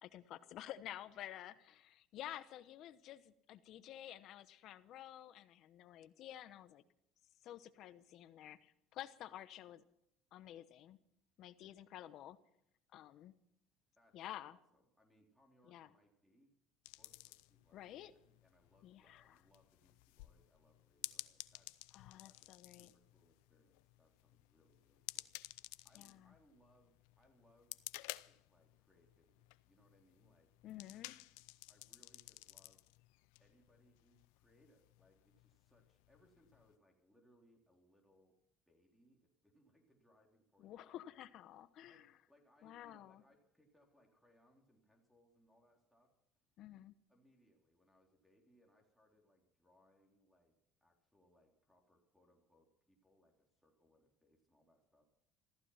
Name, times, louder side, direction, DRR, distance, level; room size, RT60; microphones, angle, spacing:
voice 1, 0.0-6.8 7.4-9.8 10.3-11.0 11.4-12.4 12.9-13.3 14.1-14.6 15.7-15.9 17.7-18.1 18.8-19.4 21.9-22.9 26.0-26.3 30.6-31.2 40.6-42.1 42.6-43.2 46.6-46.9, left 12 dB, 60° left, 14 dB, 1.0 m, -51 dB
voice 2, 14.5-16.5 16.9-21.7 22.2-27.8 28.2-30.5 31.7-32.8 33.4-38.3 38.7-41.2 41.8-46.1 47.1-50.5 50.8-55.0, equal, ahead, -1 dB, 3.7 m, -72 dB
sound 1, 16.9-36.8, left 22 dB, 80° left, 0.5 m, -54 dB
14.5 x 14.5 x 5.8 m, 0.76 s
supercardioid pair, 85°, 0 cm